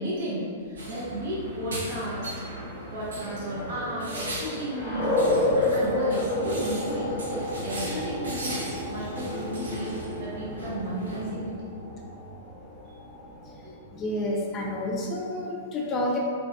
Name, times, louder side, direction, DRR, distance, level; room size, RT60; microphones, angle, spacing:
voice 1, 0.0-2.4 2.9-5.2 5.6-11.6 13.6-13.7, right 1 dB, 60° right, -7 dB, 0.9 m, -33 dB
sound 1, 0.8-11.3, right 1 dB, 85° right, 0.5 m, -39 dB
sound 2, 2.4-13.8, left 2 dB, 5° left, 1.1 m, -31 dB
voice 2, 13.9-16.2, left 1 dB, 30° left, -1 dB, 0.4 m, -29 dB
2.5 x 2.3 x 2.4 m, 2.1 s
hypercardioid pair, 120°, 0 cm